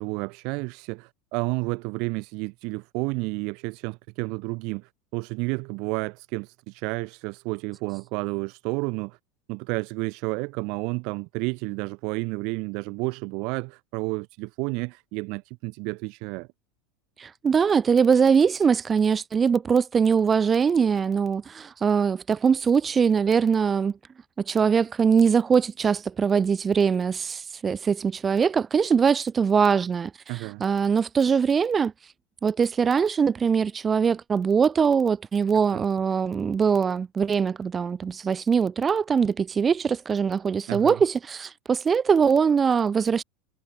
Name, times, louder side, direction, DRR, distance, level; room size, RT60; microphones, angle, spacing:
voice 1, 0.0-9.2 9.5-16.5 30.3-30.6 35.7-35.8 40.7-41.0, right 29 dB, 60° right, 7.9 m, -31 dB
voice 2, 17.2-23.9 24.5-31.9 32.4-43.2, right 6 dB, 25° right, 6.7 m, -22 dB
hypercardioid pair, 85°, 0 cm